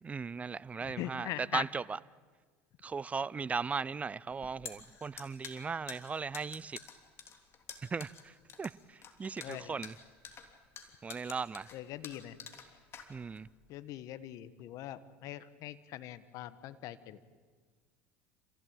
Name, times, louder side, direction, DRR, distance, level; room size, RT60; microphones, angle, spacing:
voice 1, 0.0-2.0 2.8-6.8 7.8-10.0 11.0-11.7 13.1-13.5, right 5 dB, 20° right, 0.6 m, -37 dB
voice 2, 0.8-1.6 9.4-9.8 11.7-12.4 13.7-17.2, left 14 dB, 60° left, 1.4 m, -42 dB
sound 1, 4.3-13.5, left 6 dB, 40° left, 3.1 m, -49 dB
27.5 x 16.0 x 8.9 m
hypercardioid pair, 90°, 7 cm